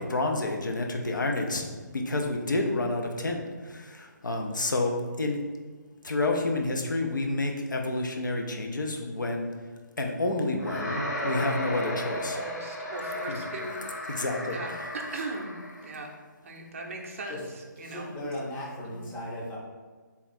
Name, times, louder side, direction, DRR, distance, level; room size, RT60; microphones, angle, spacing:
voice 1, 0.0-1.7 1.9-5.4 6.0-9.5 10.0-12.4 13.3-13.4 14.1-14.8, left 2 dB, 75° left, 2 dB, 0.6 m, -29 dB
sound 1, 10.6-16.0, left 1 dB, 60° left, 1.0 m, -35 dB
voice 2, 11.2-11.5 12.1-13.8 14.5-15.5 15.8-16.1 16.4-17.4 17.8-18.3 18.8-18.9, right 2 dB, 45° right, 1 dB, 0.5 m, -38 dB
voice 3, 17.8-19.6, left 1 dB, 10° left, -5 dB, 0.6 m, -37 dB
3.6 x 2.3 x 4.2 m, 1.4 s
figure-of-eight pair, 145°, 10 cm